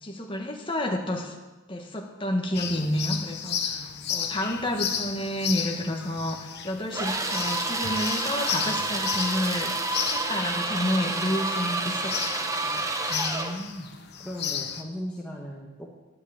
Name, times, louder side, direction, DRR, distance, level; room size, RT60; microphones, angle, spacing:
voice 1, 0.0-1.3 1.7-12.2 12.6-12.8, left 1 dB, 25° left, 2 dB, 1.7 m, -30 dB
sound 1, 2.5-14.8, left 8 dB, 50° left, 1.1 m, -34 dB
sound 2, 6.9-13.6, right 2 dB, 15° right, 1.0 m, -29 dB
voice 2, 13.1-13.9 14.2-15.9, equal, 5° left, -4 dB, 1.3 m, -37 dB
11.0 x 10.5 x 8.6 m, 1.2 s
head